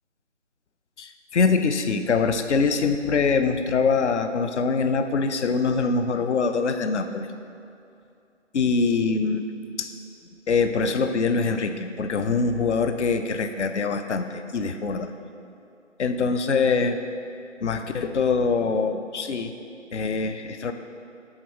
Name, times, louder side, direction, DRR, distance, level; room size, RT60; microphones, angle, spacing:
voice 1, 1.0-7.3 8.5-9.5 9.8-9.9 10.5-15.1 16.0-17.0 17.6-19.5 19.9-20.7, left 4 dB, 65° left, 8 dB, 0.5 m, -24 dB
6.3 x 3.5 x 5.4 m, 2.6 s
figure-of-eight pair, 155°, 38 cm